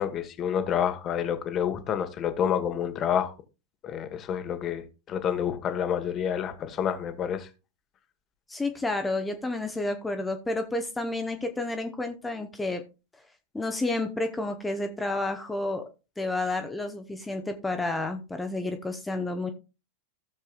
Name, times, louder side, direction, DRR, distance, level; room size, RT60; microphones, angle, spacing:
voice 1, 0.0-3.3 3.8-7.5, left 8 dB, 30° left, 1.4 m, -28 dB
voice 2, 8.5-12.8 13.5-15.9 16.2-19.5, left 2 dB, 10° left, 1.0 m, -30 dB
15.5 x 7.2 x 2.4 m
figure-of-eight pair, 90°, 0 cm